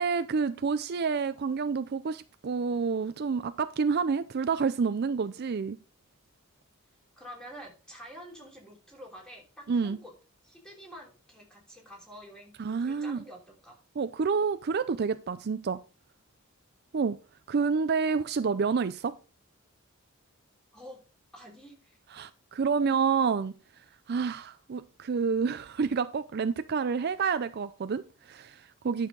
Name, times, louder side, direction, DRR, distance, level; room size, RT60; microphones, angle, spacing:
voice 1, 0.0-5.8 9.7-10.0 12.6-13.2 14.0-15.8 16.9-17.2 17.5-19.1 22.1-23.5 24.1-29.1, right 5 dB, 50° right, 0.4 m, -28 dB
voice 2, 7.2-10.1 10.4-13.8 20.7-21.0 21.3-22.0, equal, 5° left, 3.1 m, -48 dB
10.5 x 6.5 x 3.7 m
head